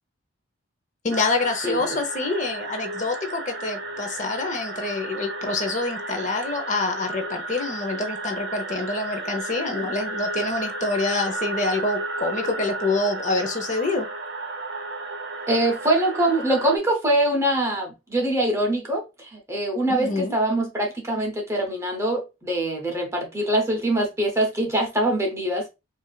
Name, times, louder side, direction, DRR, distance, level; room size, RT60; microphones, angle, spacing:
voice 1, 1.0-14.1 19.9-20.3, left 3 dB, 35° left, 0.7 m, -26 dB
sound 1, 1.1-16.8, right 2 dB, 60° right, 0.7 m, -33 dB
voice 2, 15.5-25.7, right 1 dB, 15° right, 0.7 m, -23 dB
4.8 x 2.5 x 2.3 m
head